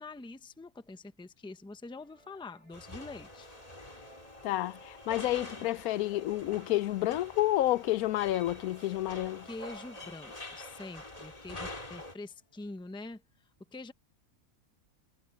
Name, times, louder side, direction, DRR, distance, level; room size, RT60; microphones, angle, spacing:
voice 1, 0.0-3.5 9.4-13.2 13.7-13.9, left 3 dB, 5° left, 0.6 m, -45 dB
sound 1, 1.8-12.9, equal, 25° right, 8.2 m, -61 dB
sound 2, 2.7-12.1, left 2 dB, 25° left, 2.8 m, -46 dB
voice 2, 4.4-9.5, left 15 dB, 90° left, 1.1 m, -30 dB
omnidirectional pair, 1.5 m